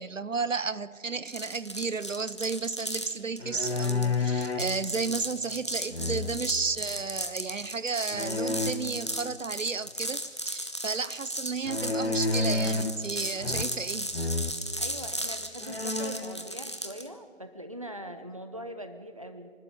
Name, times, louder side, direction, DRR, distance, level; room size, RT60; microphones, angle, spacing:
voice 1, 0.0-14.1, right 4 dB, 70° right, 18 dB, 0.8 m, -33 dB
sound 1, 1.3-17.1, right 1 dB, 20° left, 0.9 m, -36 dB
sound 2, 3.4-4.7 5.9-6.6 8.1-8.7 11.6-13.0 13.4-13.9 14.1-14.6 15.2-15.3 15.6-16.4, left 3 dB, 55° left, 1.5 m, -30 dB
voice 2, 14.8-19.5, equal, 25° right, 8 dB, 0.8 m, -41 dB
25.0 x 12.5 x 9.1 m, 2.1 s
figure-of-eight pair, 165°, 39 cm